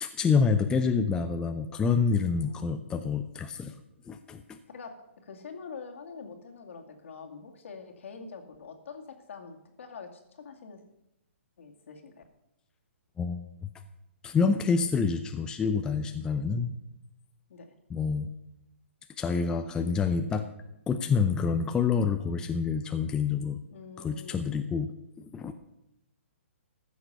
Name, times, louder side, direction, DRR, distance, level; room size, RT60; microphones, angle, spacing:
voice 1, 0.0-3.7 4.1-4.6 13.2-13.7 14.2-16.7 17.9-18.3 19.2-20.4 20.9-23.6 24.0-24.9 25.2-25.5, left 5 dB, 10° left, 7 dB, 0.6 m, -27 dB
voice 2, 2.1-3.2 4.7-5.0 5.2-10.8 11.6-12.2 17.5-17.7 23.7-24.4, left 5 dB, 65° left, 3 dB, 2.3 m, -45 dB
14.5 x 6.5 x 6.7 m, 0.86 s
hypercardioid pair, 150°, 7 cm